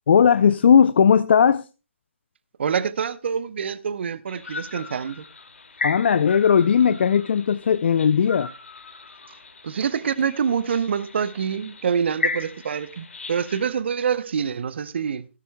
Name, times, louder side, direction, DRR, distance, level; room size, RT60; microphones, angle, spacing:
voice 1, 0.1-1.6 5.8-8.5, left 7 dB, 55° left, 0.5 m, -17 dB
voice 2, 2.6-5.2 9.6-15.3, right 7 dB, 55° right, 0.7 m, -26 dB
sound 1, 4.3-13.7, left 3 dB, 75° left, 2.3 m, -36 dB
15.5 x 12.5 x 2.2 m
figure-of-eight pair, 145°, 7 cm